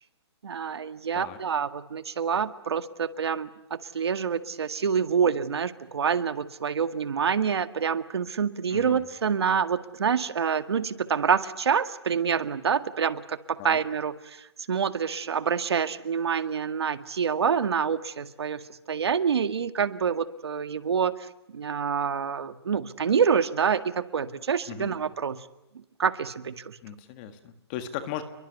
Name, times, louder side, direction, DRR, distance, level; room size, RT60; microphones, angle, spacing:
voice 1, 0.4-13.4 13.6-18.6 18.9-21.3 21.5-25.4 26.0-26.8, right 6 dB, 65° right, 11 dB, 1.9 m, -27 dB
voice 2, 8.7-9.0 13.6-13.8 24.7-25.0 26.8-28.2, left 10 dB, 20° left, 10 dB, 1.7 m, -37 dB
30.0 x 23.0 x 8.3 m, 0.91 s
hypercardioid pair, 175°, 14 cm